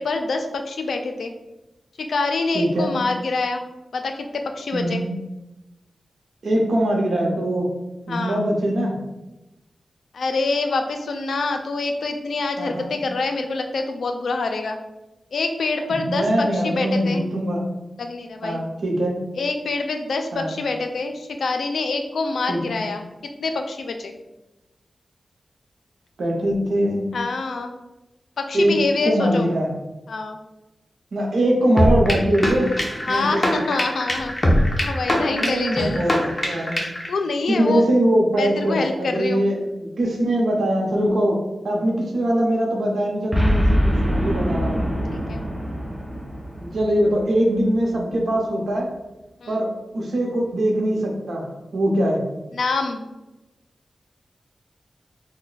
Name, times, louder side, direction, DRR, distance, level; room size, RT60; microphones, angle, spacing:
voice 1, 0.0-1.3 2.0-3.7 3.9-5.0 8.1-8.4 10.1-14.8 15.3-17.2 18.0-18.6 19.4-23.0 23.4-24.2 27.1-27.7 28.4-29.5 30.1-30.4 33.0-34.3 34.8-36.1 37.1-37.9 38.4-39.4 45.1-45.5 49.4-49.5 52.5-53.0, left 3 dB, 90° left, 5 dB, 0.4 m, -26 dB
voice 2, 2.5-3.0 4.7-5.0 6.4-7.7 8.1-9.0 12.6-12.9 16.1-17.6 18.4-19.2 20.3-20.5 22.5-22.8 26.2-27.1 28.5-28.7 29.0-29.7 31.1-32.7 33.1-33.6 34.7-34.8 35.2-36.8 37.5-41.4 41.6-44.8 46.6-48.9 49.5-51.5 51.7-52.2, right 1 dB, 90° right, -1 dB, 0.7 m, -22 dB
sound 1, 31.8-37.1, left 1 dB, 30° left, 0.6 m, -22 dB
Boom, 43.3-47.7, equal, 15° right, 0.7 m, -23 dB
3.0 x 2.1 x 3.9 m, 1.0 s
wide cardioid pair, 105°, 0 cm